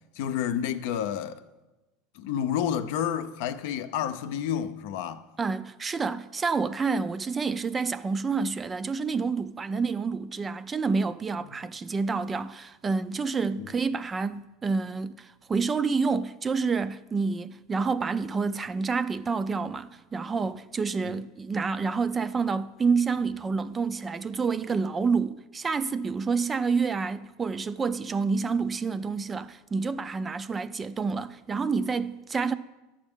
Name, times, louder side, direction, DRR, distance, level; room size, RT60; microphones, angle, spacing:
voice 1, 0.1-1.4 2.1-5.2 11.5-11.6 13.6-13.7 21.1-21.2, left 9 dB, 70° left, 0.5 m, -30 dB
voice 2, 5.4-32.5, right 4 dB, 25° right, 0.4 m, -28 dB
10.5 x 7.2 x 3.6 m
hypercardioid pair, 95°, 0 cm